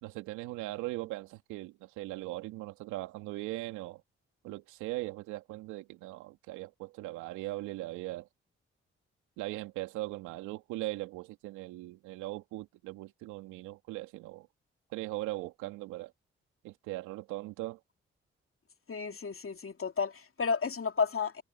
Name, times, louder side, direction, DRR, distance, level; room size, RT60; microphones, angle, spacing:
voice 1, 0.0-4.0 4.4-8.3 9.4-14.5 14.9-16.1 16.6-17.8, right 19 dB, 90° right, 2.8 m, -39 dB
voice 2, 18.9-21.4, left 5 dB, 45° left, 2.8 m, -32 dB
hypercardioid pair, 45°, 30 cm